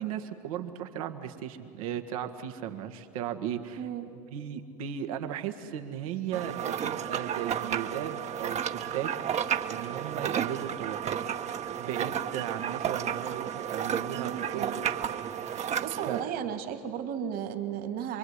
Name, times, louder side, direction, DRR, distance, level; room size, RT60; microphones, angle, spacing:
voice 1, 0.0-3.8 4.3-11.2 11.8-15.8 16.1-16.3, right 9 dB, 85° right, 5 dB, 1.8 m, -36 dB
voice 2, 3.8-4.1 14.1-14.8 15.8-18.2, right 9 dB, 60° right, 8 dB, 2.5 m, -34 dB
sound 1, 6.3-16.2, right 9 dB, 40° right, 1.2 m, -32 dB
27.0 x 22.5 x 9.7 m, 2.6 s
supercardioid pair, 95°, 18 cm